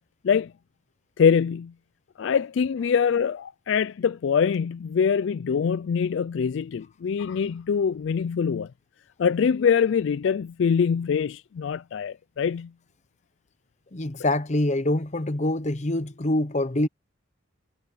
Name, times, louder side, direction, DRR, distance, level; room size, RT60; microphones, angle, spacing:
voice 1, 1.2-1.7 2.2-8.7 9.2-12.7, left 6 dB, 60° left, 0.3 m, -24 dB
voice 2, 13.9-16.9, left 1 dB, 35° left, 0.8 m, -25 dB
head